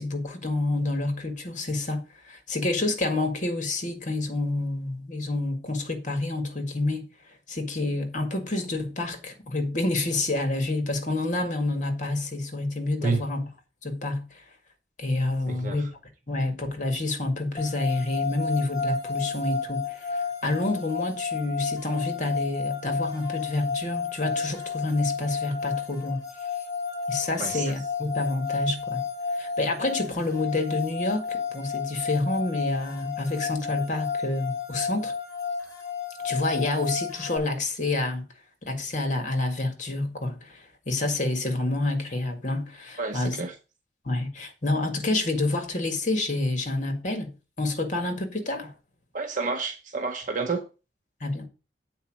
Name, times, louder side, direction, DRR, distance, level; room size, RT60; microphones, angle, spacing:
voice 1, 0.0-7.0 7.5-13.5 13.8-14.2 15.0-15.9 16.3-26.2 27.1-29.0 29.4-35.1 36.2-38.2 38.6-43.4 44.1-47.3 47.6-48.7 51.2-51.5, left 2 dB, 45° left, 1.8 m, -28 dB
voice 2, 15.5-15.9 27.4-27.6 43.0-43.5 49.1-50.6, right 4 dB, 45° right, 0.9 m, -29 dB
sound 1, 17.6-37.4, left 5 dB, 20° left, 3.0 m, -32 dB
8.2 x 4.4 x 6.3 m
head